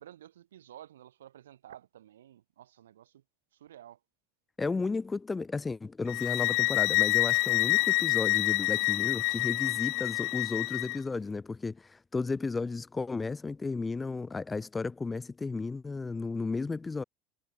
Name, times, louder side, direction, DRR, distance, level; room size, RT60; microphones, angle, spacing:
voice 1, 0.0-3.2 3.5-4.0, right 11 dB, 85° right, 4.8 m, -52 dB
voice 2, 4.6-17.0, left 4 dB, 20° left, 1.4 m, -34 dB
sound 1, 6.1-11.0, left 25 dB, 65° left, 0.5 m, -27 dB
hypercardioid pair, 80°, 0 cm